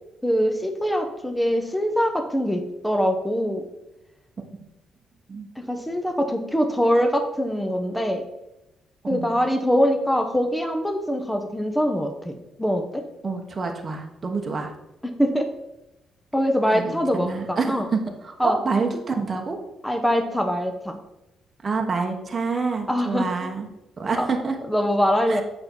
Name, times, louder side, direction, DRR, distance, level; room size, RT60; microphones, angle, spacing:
voice 1, 0.2-3.6 5.6-8.2 9.1-13.0 15.0-15.5 16.3-17.9 18.4-18.6 19.8-21.0 22.9-23.3 24.1-24.3 24.7-25.4, equal, 5° left, 5 dB, 0.9 m, -23 dB
voice 2, 13.2-14.7 16.7-19.6 21.6-23.7 24.0-24.6 25.3-25.4, right 4 dB, 35° right, 2 dB, 1.1 m, -27 dB
7.7 x 5.4 x 4.5 m, 0.93 s
cardioid pair, 90°, 0 cm